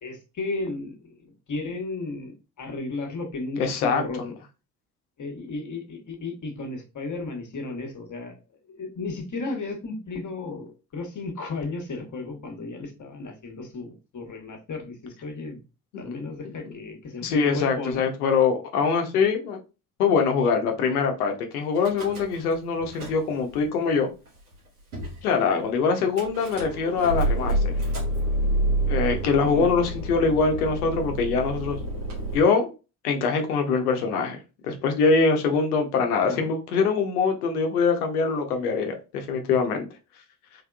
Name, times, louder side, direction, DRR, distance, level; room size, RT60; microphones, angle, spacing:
voice 1, 0.0-4.3 5.2-8.3 8.7-15.6 16.0-18.0 29.4-29.7 36.2-36.5, left 3 dB, 40° left, 1.4 m, -34 dB
voice 2, 3.6-4.3 16.4-16.7 17.2-19.6 20.0-24.1 25.2-27.7 28.9-31.8 32.3-32.7 33.0-34.4 34.6-39.9, left 5 dB, 80° left, 0.9 m, -23 dB
Car / Engine starting / Idling, 21.8-22.5 22.8-23.6 24.3-24.4 24.5-24.6 24.9-25.2 26.2-32.3, right 1 dB, 90° right, 1.5 m, -28 dB
3.7 x 3.5 x 2.3 m
hypercardioid pair, 50°, 44 cm